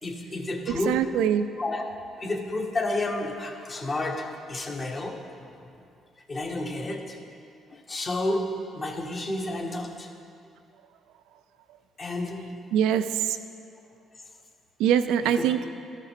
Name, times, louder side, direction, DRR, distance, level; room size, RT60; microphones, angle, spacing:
voice 1, 0.0-1.2 1.6-5.8 6.3-7.2 7.7-10.1 12.0-12.7 15.4-15.7, left 2 dB, 40° left, 1 dB, 1.2 m, -31 dB
voice 2, 0.7-1.5 12.7-13.4 14.8-15.6, right 9 dB, 80° right, 11 dB, 0.3 m, -23 dB
13.5 x 5.6 x 3.6 m, 2.4 s
hypercardioid pair, 55°, 0 cm